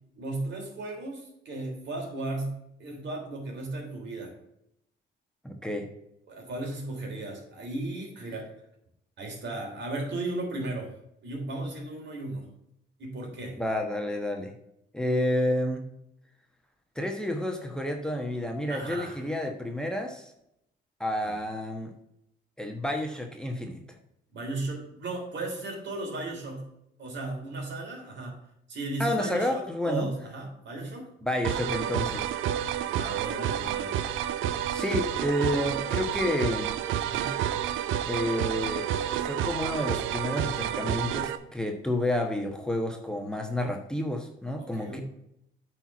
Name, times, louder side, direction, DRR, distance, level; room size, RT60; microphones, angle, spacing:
voice 1, 0.1-4.3 6.3-8.5 9.2-10.9 11.2-12.5 13.0-13.6 18.7-19.3 21.2-21.3 24.3-26.7 27.0-28.3 28.7-31.1 32.9-33.9 37.1-37.4 44.6-45.0, right 2 dB, 65° right, 1 dB, 3.2 m, -35 dB
voice 2, 5.4-5.9 13.6-14.5 14.9-15.9 16.9-20.3 21.0-21.9 22.6-23.8 29.0-30.1 31.2-32.3 34.7-36.7 38.0-38.9 39.2-45.0, left 1 dB, 5° left, 3 dB, 1.1 m, -30 dB
sound 1, 31.4-41.4, right 10 dB, 85° right, 0.6 m, -30 dB
8.8 x 4.5 x 6.0 m, 0.79 s
cardioid pair, 90°, 20 cm